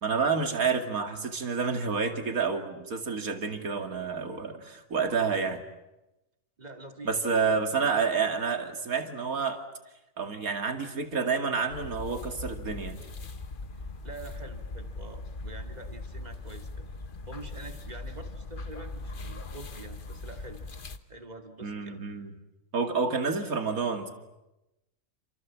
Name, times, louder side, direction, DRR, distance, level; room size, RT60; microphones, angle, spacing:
voice 1, 0.0-5.6 7.0-9.6 10.2-13.0 21.6-22.3 22.7-24.1, right 5 dB, 80° right, 6 dB, 2.8 m, -29 dB
voice 2, 6.6-7.5 13.7-16.8 17.3-20.6 21.1-22.0, right 2 dB, 30° right, 5 dB, 2.5 m, -46 dB
sound 1, 11.7-21.0, left 2 dB, 40° left, 1.2 m, -40 dB
28.5 x 26.5 x 7.5 m, 0.98 s
omnidirectional pair, 1.5 m